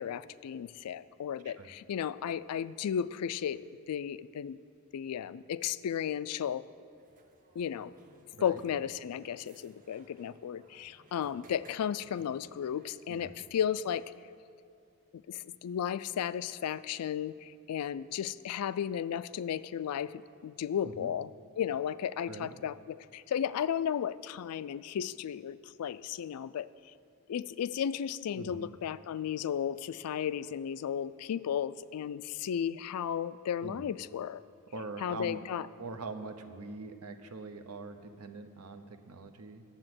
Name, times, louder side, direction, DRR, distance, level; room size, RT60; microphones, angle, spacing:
voice 1, 0.0-3.6 3.9-4.6 4.9-6.6 7.6-7.9 8.4-14.1 15.1-21.3 21.6-26.7 27.3-34.4 35.0-35.7, left 8 dB, 75° left, 16 dB, 0.3 m, -34 dB
sound 1, 7.0-13.0, right 2 dB, 35° right, 0.8 m, -61 dB
voice 2, 28.3-28.7 33.6-33.8 34.7-35.4 35.8-39.6, right 3 dB, 80° right, 8 dB, 0.8 m, -43 dB
9.8 x 7.1 x 7.7 m, 2.4 s
head